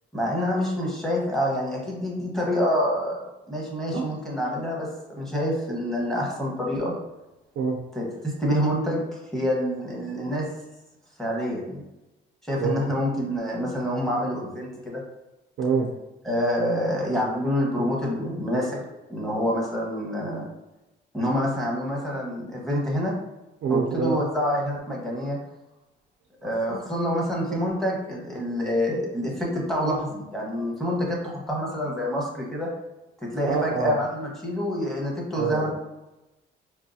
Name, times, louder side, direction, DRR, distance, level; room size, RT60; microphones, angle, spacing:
voice 1, 0.1-3.2 3.5-4.9 5.2-6.9 7.9-9.0 9.3-10.5 11.2-11.8 12.5-15.0 16.2-18.8 19.1-20.4 21.1-23.1 23.7-25.4 26.4-32.7 33.2-35.7, equal, ahead, -4 dB, 1.3 m, -27 dB
voice 2, 15.6-15.9 23.6-24.2 26.4-26.8 33.4-34.0 35.4-35.7, right 5 dB, 70° right, 0 dB, 0.5 m, -26 dB
4.6 x 2.2 x 2.7 m, 0.99 s
cardioid pair, 90°, 20 cm